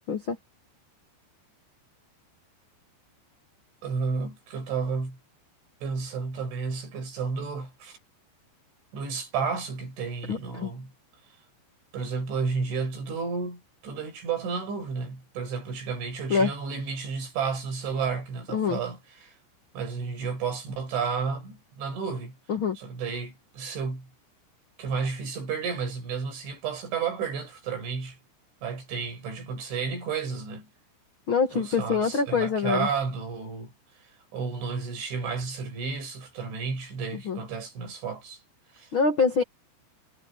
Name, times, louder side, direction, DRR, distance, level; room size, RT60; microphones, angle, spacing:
voice 1, 3.8-5.2 5.8-8.0 8.9-10.9 11.9-19.4 19.7-22.4 22.8-24.1 24.8-28.2 28.6-30.7 31.5-33.7 34.3-38.4 38.7-38.9, right 5 dB, 90° right, 8.8 m, -32 dB
voice 2, 10.3-10.7 16.3-16.5 18.5-18.8 22.5-22.8 31.3-32.9 37.2-37.4 38.9-39.4, left 5 dB, 65° left, 1.2 m, -25 dB
omnidirectional pair, 5.2 m